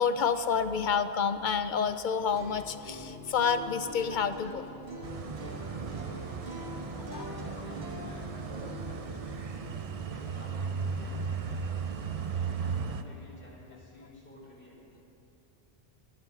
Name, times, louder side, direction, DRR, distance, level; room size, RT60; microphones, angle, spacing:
voice 1, 0.0-4.7 5.7-5.8 7.1-7.3 12.5-12.6, left 6 dB, 60° left, 11 dB, 0.6 m, -29 dB
sound 1, 2.2-12.1, left 1 dB, 80° right, 2.4 m, -45 dB
Apartment roomtone staircase walla, 5.0-13.0, right 6 dB, 45° right, 0.6 m, -36 dB
voice 2, 5.9-7.1 7.4-9.6 10.1-11.7 12.1-14.8, left 1 dB, 90° left, -7 dB, 4.0 m, -53 dB
24.5 x 12.0 x 3.6 m, 2.9 s
omnidirectional pair, 1.1 m